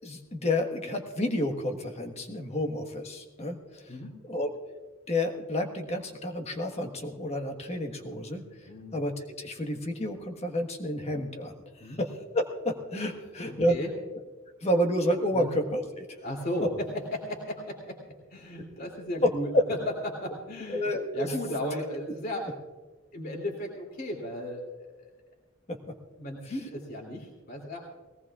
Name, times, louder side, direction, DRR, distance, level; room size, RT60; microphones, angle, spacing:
voice 1, 0.0-4.0 4.2-4.5 5.1-9.1 9.4-13.8 14.6-16.0 19.2-19.6 20.7-21.3 25.7-25.8, left 1 dB, 30° left, 4 dB, 1.4 m, -30 dB
voice 2, 13.4-13.9 15.3-15.5 16.2-19.8 20.1-20.8 21.1-22.6 23.1-24.6 24.9-25.2 26.2-27.9, left 1 dB, 50° left, 0 dB, 2.9 m, -35 dB
21.0 x 18.0 x 2.4 m, 1.3 s
head